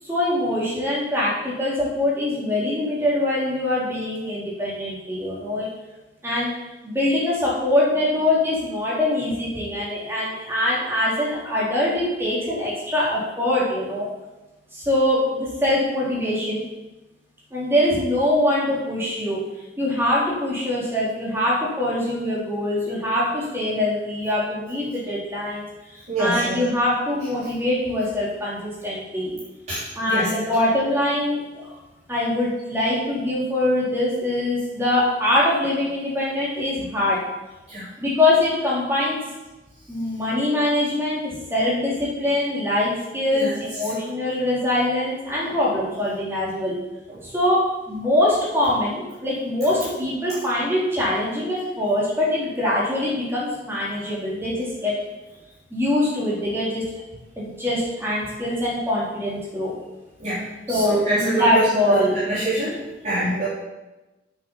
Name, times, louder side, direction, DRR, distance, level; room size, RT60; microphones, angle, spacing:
voice 1, 0.0-5.7 6.2-6.5 6.8-14.1 14.7-16.7 17.5-19.4 19.8-25.6 25.9-29.4 29.9-31.8 32.1-37.2 38.0-39.2 39.9-46.7 47.2-54.9 55.7-56.8 57.4-59.7 60.7-62.2, left 1 dB, 15° right, -6 dB, 3.6 m, -23 dB
voice 2, 26.1-26.6 29.7-30.3 37.7-37.9 43.3-43.5 47.1-47.2 60.2-60.4 60.7-62.7 63.0-63.5, right 2 dB, 40° right, -11 dB, 3.6 m, -24 dB
8.5 x 7.0 x 7.2 m, 1.1 s
head